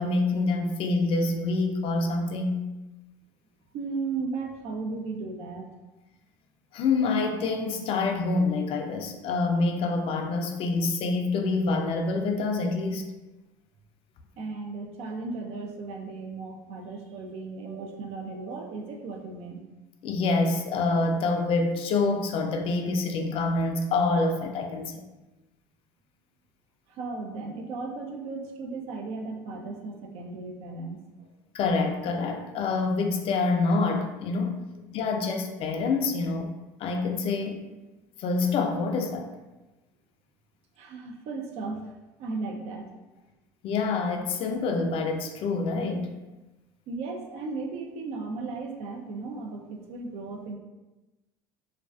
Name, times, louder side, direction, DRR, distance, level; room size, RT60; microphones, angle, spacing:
voice 1, 0.0-2.6 6.7-13.0 20.0-25.1 31.5-34.6 34.9-36.5 36.8-37.7 38.2-39.3 43.6-46.1, left 3 dB, 50° left, 4 dB, 0.4 m, -26 dB
voice 2, 3.7-5.7 14.4-19.6 26.9-31.3 40.8-41.9 42.2-42.9 46.9-50.5, right 3 dB, 60° right, 2 dB, 0.4 m, -36 dB
2.4 x 2.3 x 2.3 m, 1.1 s
hypercardioid pair, 75°, 12 cm